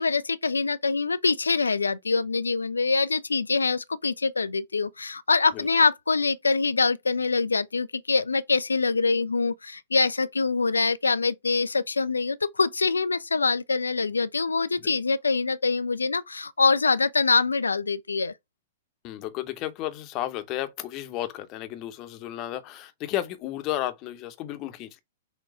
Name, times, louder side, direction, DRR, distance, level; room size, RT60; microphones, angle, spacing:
voice 1, 0.0-18.3, left 4 dB, 80° left, 0.4 m, -24 dB
voice 2, 19.0-25.0, left 13 dB, 35° left, 0.8 m, -33 dB
6.2 x 2.3 x 3.7 m
figure-of-eight pair, 105°, 0 cm